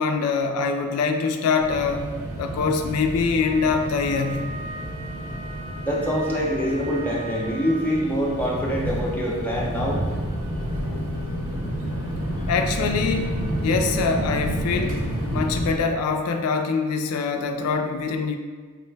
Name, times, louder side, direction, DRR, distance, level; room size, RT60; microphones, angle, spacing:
voice 1, 0.0-2.1 2.4-4.5 12.5-15.0 15.3-18.4, left 5 dB, 80° left, 6 dB, 0.3 m, -24 dB
sound 1, 1.6-15.7, equal, 60° right, 0.7 m, -30 dB
Wind instrument woodwind instrument, 3.4-8.1, right 3 dB, 75° right, 1.4 m, -39 dB
voice 2, 5.8-10.0, equal, 10° left, -5 dB, 0.5 m, -25 dB
4.5 x 2.1 x 3.2 m, 1.5 s
head